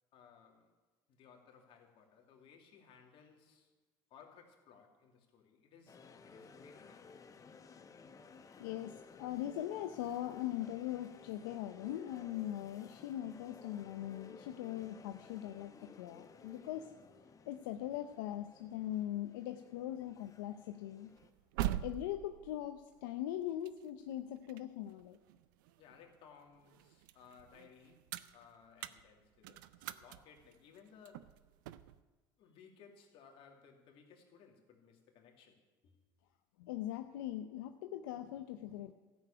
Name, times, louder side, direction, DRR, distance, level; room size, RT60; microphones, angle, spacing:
voice 1, 0.1-0.7 1.1-3.7 4.1-7.2 25.8-31.4 32.4-35.9, left 6 dB, 60° left, 2 dB, 2.5 m, -61 dB
sound 1, 5.9-21.3, left 5 dB, 30° left, 1.0 m, -57 dB
voice 2, 8.6-15.7 16.0-16.9 17.4-21.1 21.8-25.2 36.6-38.9, left 12 dB, 90° left, 7 dB, 0.6 m, -41 dB
sound 2, 21.1-26.1 26.6-32.0, right 13 dB, 85° right, 0.5 m, -44 dB
13.5 x 7.0 x 8.7 m, 1.3 s
supercardioid pair, 85°, 10 cm